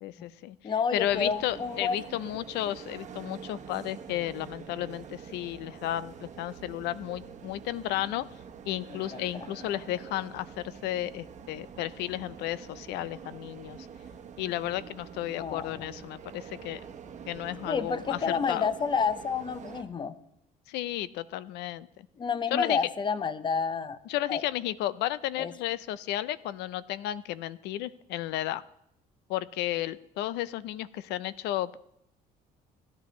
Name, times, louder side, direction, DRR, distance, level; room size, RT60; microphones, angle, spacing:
voice 1, 0.0-8.3 8.7-13.8 14.4-16.8 17.3-18.7 20.7-22.1 22.5-22.8 24.1-28.6 29.3-31.8, left 14 dB, 85° left, 17 dB, 0.5 m, -33 dB
voice 2, 0.6-2.0 8.9-9.2 15.3-15.8 17.7-20.1 22.2-24.0 24.3-24.4 25.4-25.5, left 5 dB, 30° left, 14 dB, 0.6 m, -29 dB
sound 1, 1.0-19.8, right 7 dB, 45° right, 1.0 m, -46 dB
16.5 x 10.5 x 3.1 m, 0.77 s
cardioid pair, 110°, 17 cm